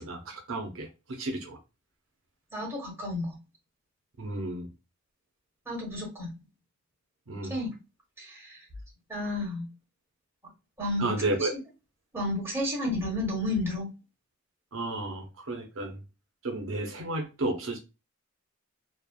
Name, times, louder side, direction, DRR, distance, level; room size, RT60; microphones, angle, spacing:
voice 1, 0.0-1.6 4.2-4.7 7.3-7.6 11.0-11.5 14.7-16.0 16.4-17.8, right 2 dB, 70° right, 0.6 m, -32 dB
voice 2, 2.5-3.3 5.7-6.3 7.5-7.7 8.2-8.6 9.1-9.7 10.8-11.4 12.1-13.9, left 1 dB, 10° right, 1.3 m, -31 dB
3.1 x 2.0 x 2.2 m
head